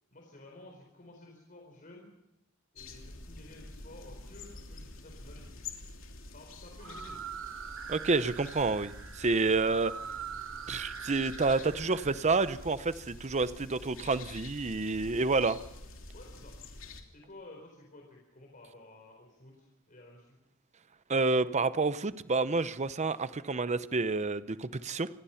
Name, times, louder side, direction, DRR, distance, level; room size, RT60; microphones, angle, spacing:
voice 1, 0.1-2.1 2.7-5.5 6.3-7.2 15.5-15.7 16.1-16.5 17.1-20.4, left 2 dB, 40° left, 0 dB, 4.5 m, -53 dB
sound 1, 2.8-17.0, left 2 dB, 65° left, 3.0 m, -48 dB
sound 2, 6.7-12.5, right 7 dB, 65° right, 1.1 m, -43 dB
voice 2, 7.9-9.9 10.7-15.6 21.1-25.1, right 3 dB, 30° right, 14 dB, 0.7 m, -29 dB
27.0 x 20.5 x 5.8 m, 0.94 s
head